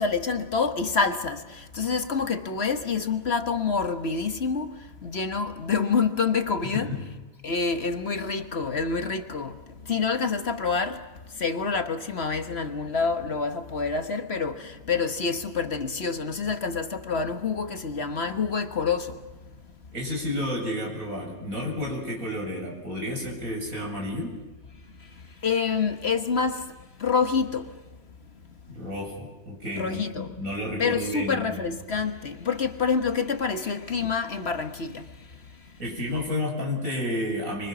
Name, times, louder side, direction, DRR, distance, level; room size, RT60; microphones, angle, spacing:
voice 1, 0.0-6.9 7.4-11.1 11.3-19.3 25.4-26.7 27.0-27.8 29.8-30.3 30.8-35.1, left 5 dB, 50° left, 1.5 m, -27 dB
voice 2, 6.7-7.0 19.9-24.4 28.7-31.6 35.8-37.7, left 1 dB, 80° right, 8.0 m, -31 dB
30.0 x 23.5 x 6.2 m
omnidirectional pair, 1.4 m